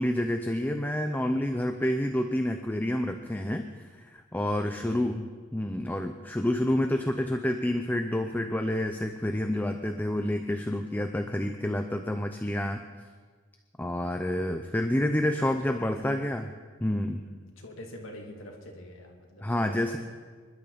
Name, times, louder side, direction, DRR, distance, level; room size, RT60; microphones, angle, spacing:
voice 1, 0.0-12.8 13.8-16.4 16.8-17.2 19.4-20.0, left 1 dB, 10° left, 6 dB, 0.6 m, -29 dB
voice 2, 4.5-5.1 15.4-16.2 17.2-20.0, left 1 dB, 80° left, 1 dB, 2.6 m, -45 dB
26.0 x 12.5 x 4.1 m, 1.5 s
head